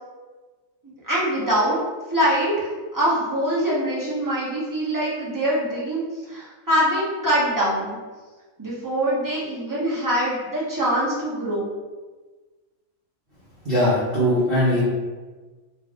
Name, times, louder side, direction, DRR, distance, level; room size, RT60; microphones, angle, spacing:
voice 1, 0.8-1.8 2.1-6.0 6.3-8.0 8.6-11.7, equal, 20° right, -8 dB, 0.5 m, -23 dB
voice 2, 13.6-14.8, equal, 45° right, -10 dB, 0.9 m, -20 dB
3.3 x 2.5 x 3.5 m, 1.3 s
omnidirectional pair, 1.6 m